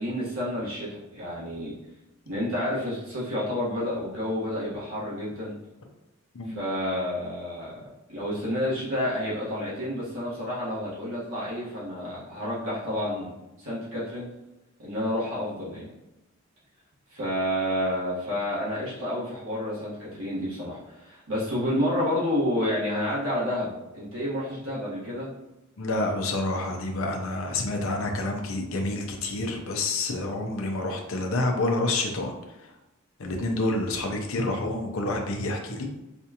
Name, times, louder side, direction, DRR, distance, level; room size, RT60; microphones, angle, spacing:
voice 1, 0.0-1.7 2.2-5.6 6.4-13.3 13.6-14.2 14.8-15.9 17.1-25.3, left 1 dB, 75° right, -8 dB, 1.4 m, -30 dB
voice 2, 25.8-32.3 33.2-35.9, left 2 dB, 70° left, 2 dB, 0.5 m, -28 dB
4.2 x 2.4 x 2.8 m, 0.96 s
head